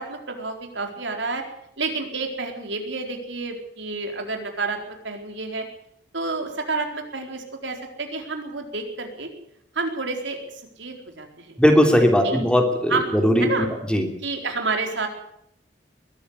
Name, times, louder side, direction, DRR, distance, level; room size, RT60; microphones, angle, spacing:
voice 1, 0.0-1.4 1.8-5.6 6.1-9.3 9.7-11.6 12.2-12.4 12.9-13.1 13.4-13.7 14.2-15.1, right 3 dB, 90° right, 3 dB, 4.4 m, -29 dB
voice 2, 11.6-13.5 13.9-14.1, equal, 5° left, 3 dB, 3.2 m, -18 dB
22.0 x 13.0 x 9.7 m, 0.72 s
head